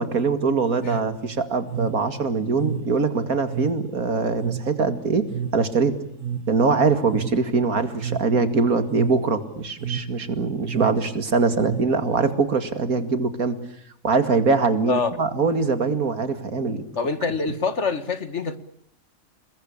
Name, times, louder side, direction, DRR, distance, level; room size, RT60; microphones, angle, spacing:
voice 1, 0.0-6.0 6.5-13.6 14.0-16.8, right 4 dB, 85° right, 9 dB, 2.6 m, -23 dB
sound 1, 0.8-12.4, right 7 dB, 65° right, 1.9 m, -33 dB
voice 2, 17.0-18.6, left 4 dB, 55° left, 11 dB, 2.1 m, -25 dB
28.5 x 21.5 x 8.6 m, 0.71 s
omnidirectional pair, 1.5 m